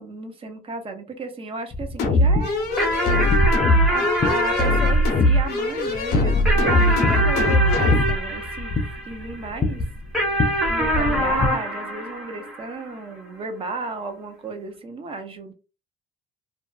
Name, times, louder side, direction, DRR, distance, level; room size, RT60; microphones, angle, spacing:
voice 1, 0.0-2.7 3.9-8.7 9.0-9.8 10.7-15.5, right 3 dB, 35° right, 6 dB, 0.7 m, -33 dB
sound 1, 1.7-11.5, left 3 dB, 25° left, 0.4 m, -29 dB
sound 2, 2.0-8.2, left 1 dB, 70° left, 0.7 m, -20 dB
sound 3, 2.8-9.5 10.1-13.0, equal, ahead, 0.8 m, -25 dB
2.5 x 2.4 x 2.3 m, 0.32 s
cardioid pair, 110°, 17 cm